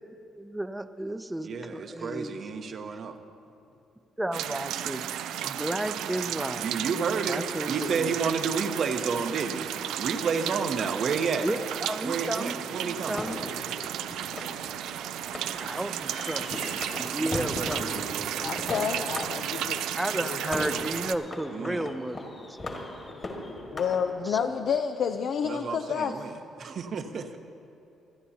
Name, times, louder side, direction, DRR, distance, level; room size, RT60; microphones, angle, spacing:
voice 1, 0.3-2.5 4.2-5.1 5.4-6.7 7.3-8.1 11.4-12.6 12.8-13.4 15.5-17.9 19.9-22.6 24.2-24.4, right 1 dB, 10° right, 10 dB, 0.6 m, -33 dB
voice 2, 1.4-3.1 6.6-9.7 10.0-11.5 12.0-13.2 17.2-18.3 21.5-21.9 25.4-27.4, right 5 dB, 60° right, 6 dB, 0.9 m, -31 dB
sound 1, 4.3-21.1, right 11 dB, 85° right, 0.3 m, -34 dB
sound 2, 13.2-24.0, left 2 dB, 40° left, 1.9 m, -38 dB
voice 3, 18.4-19.9 20.2-20.4 23.7-26.2, left 7 dB, 65° left, 7 dB, 0.4 m, -29 dB
26.0 x 9.8 x 2.8 m, 2.6 s
cardioid pair, 90°, 0 cm